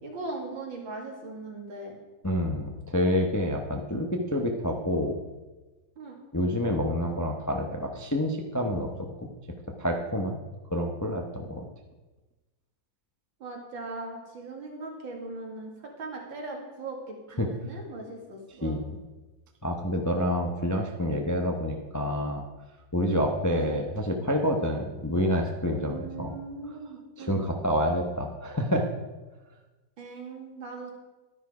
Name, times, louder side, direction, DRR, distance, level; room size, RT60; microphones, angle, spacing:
voice 1, 0.0-2.0 6.0-6.2 13.4-18.8 23.5-23.8 25.8-27.5 30.0-30.9, right 3 dB, 80° right, 1 dB, 2.9 m, -39 dB
voice 2, 2.2-5.2 6.3-9.3 9.8-10.4 10.7-11.6 17.4-17.5 18.6-18.9 19.6-22.4 22.9-26.3 27.2-28.9, equal, 20° left, 3 dB, 0.4 m, -28 dB
12.0 x 9.9 x 4.9 m, 1.2 s
omnidirectional pair, 2.1 m